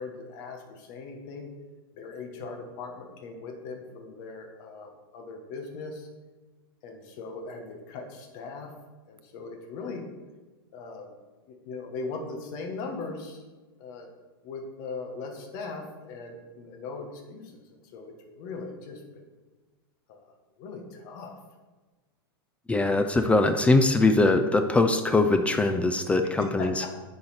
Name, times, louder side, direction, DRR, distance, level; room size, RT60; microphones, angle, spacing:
voice 1, 0.0-1.5 1.9-6.1 6.8-8.7 9.1-10.0 10.7-11.1 11.5-13.4 13.8-14.1 14.4-17.6 17.9-19.0 20.1-20.3 20.6-21.4 26.2-26.9, left 4 dB, 50° left, 3 dB, 1.4 m, -39 dB
voice 2, 22.7-26.9, left 2 dB, 10° left, 7 dB, 0.4 m, -22 dB
9.5 x 4.1 x 4.3 m, 1.3 s
hypercardioid pair, 125°, 13 cm